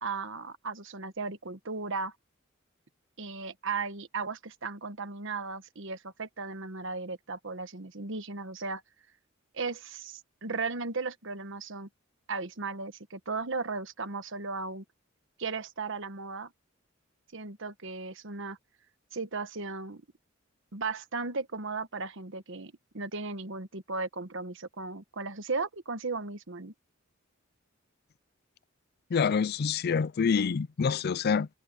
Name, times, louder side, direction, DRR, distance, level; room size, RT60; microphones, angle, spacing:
voice 1, 0.0-2.1 3.2-8.8 9.5-11.9 12.3-14.8 15.4-16.5 17.3-18.6 19.1-20.0 20.7-26.7, right 4 dB, 65° right, 1.3 m, -36 dB
voice 2, 29.1-31.5, left 6 dB, 50° left, 0.4 m, -26 dB
head